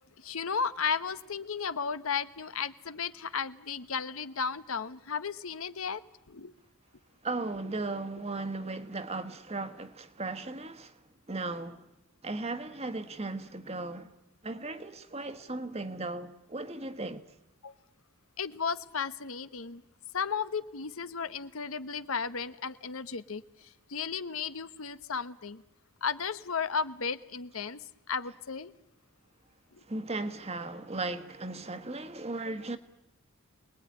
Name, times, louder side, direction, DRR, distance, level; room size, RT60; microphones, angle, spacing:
voice 1, 0.2-6.5 17.6-17.7 18.4-19.8 20.1-25.6 26.0-28.7 32.5-32.6, left 6 dB, 80° left, 1.0 m, -34 dB
voice 2, 7.2-11.0 11.3-11.8 12.2-14.1 14.4-17.2 29.9-32.8, right 2 dB, 30° right, 1.4 m, -36 dB
28.0 x 20.0 x 9.5 m
head